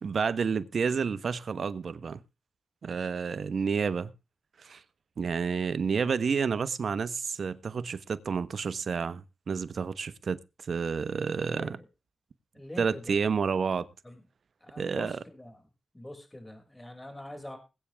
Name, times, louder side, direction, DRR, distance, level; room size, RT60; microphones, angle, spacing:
voice 1, 0.0-2.2 2.8-4.1 4.6-4.8 5.2-11.8 12.8-13.9 14.8-15.2, right 5 dB, 70° right, 1.1 m, -30 dB
voice 2, 12.5-13.2 14.0-14.2 14.6-15.6 15.9-17.6, left 1 dB, 20° left, 5.9 m, -44 dB
21.0 x 8.7 x 3.5 m
cardioid pair, 45°, 0 cm